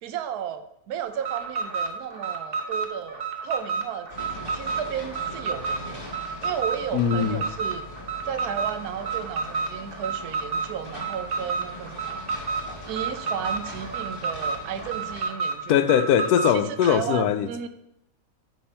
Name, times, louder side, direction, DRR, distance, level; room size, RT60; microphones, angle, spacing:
voice 1, 0.0-6.0 6.4-7.9 8.2-12.2 12.9-15.8 16.5-17.7, right 9 dB, 90° right, 1.2 m, -34 dB
Alarm, 1.1-16.6, right 5 dB, 45° right, 1.0 m, -30 dB
sound 1, 4.1-15.3, left 1 dB, 35° left, 2.0 m, -41 dB
voice 2, 6.9-7.4 15.7-17.7, left 9 dB, 85° left, 1.1 m, -21 dB
8.5 x 3.5 x 5.5 m
omnidirectional pair, 1.6 m